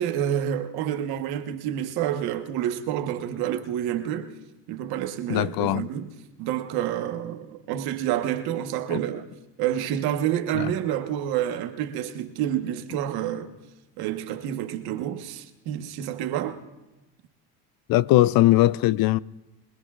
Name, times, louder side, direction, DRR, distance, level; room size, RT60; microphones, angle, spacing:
voice 1, 0.0-4.3 4.7-6.1 6.4-9.2 9.6-13.5 14.0-16.6, right 11 dB, 80° right, 1.3 m, -28 dB
voice 2, 5.3-5.9 8.9-9.0 10.5-10.7 17.9-19.2, left 16 dB, 70° left, 0.5 m, -20 dB
25.5 x 20.5 x 2.5 m
supercardioid pair, 90°, 37 cm